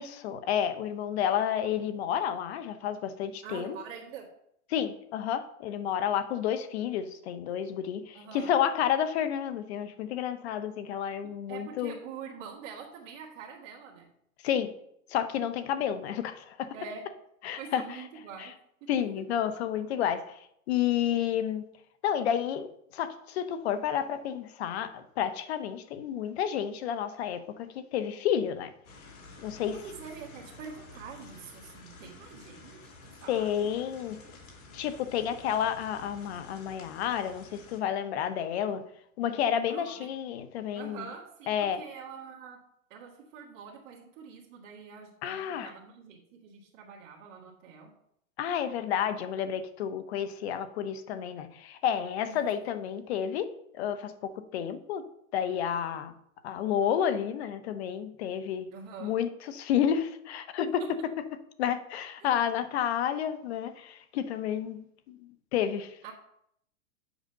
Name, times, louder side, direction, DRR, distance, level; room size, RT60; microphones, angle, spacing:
voice 1, 0.0-3.8 4.7-11.9 14.4-14.7 15.1-16.7 17.4-18.0 18.4-18.5 18.9-20.4 20.7-21.6 22.0-22.7 22.9-28.7 29.4-29.8 33.3-34.2 34.7-38.8 39.2-41.1 41.5-41.8 45.2-45.7 48.4-53.5 53.7-55.0 55.3-56.1 56.4-58.7 59.0-60.8 61.6-66.1, left 9 dB, 50° left, 11 dB, 1.0 m, -30 dB
voice 2, 3.4-4.3 8.1-8.5 11.2-14.1 16.7-17.1 17.6-19.2 29.7-33.5 39.7-40.1 40.7-47.9 52.3-52.5 58.7-59.2 60.7-60.9 66.0-66.1, right 6 dB, 30° right, -7 dB, 1.9 m, -45 dB
sound 1, 28.8-37.8, left 3 dB, 85° left, 2.9 m, -51 dB
8.0 x 5.0 x 6.8 m, 0.73 s
supercardioid pair, 160°, 41 cm